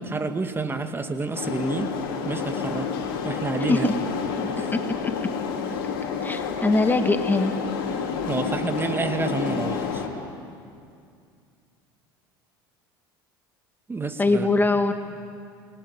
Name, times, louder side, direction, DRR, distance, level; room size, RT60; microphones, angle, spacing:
voice 1, 0.0-2.0 2.2-3.0 3.2-3.9 4.6-4.7 8.3-10.0 13.9-14.5, right 3 dB, 20° right, 7 dB, 1.9 m, -29 dB
sound 1, 1.3-10.1, left 6 dB, 65° left, 3.8 m, -29 dB
voice 2, 4.7-5.1 6.2-7.5 14.2-14.9, left 3 dB, 15° left, 7 dB, 1.7 m, -22 dB
28.0 x 20.0 x 9.9 m, 2.3 s
hypercardioid pair, 75°, 12 cm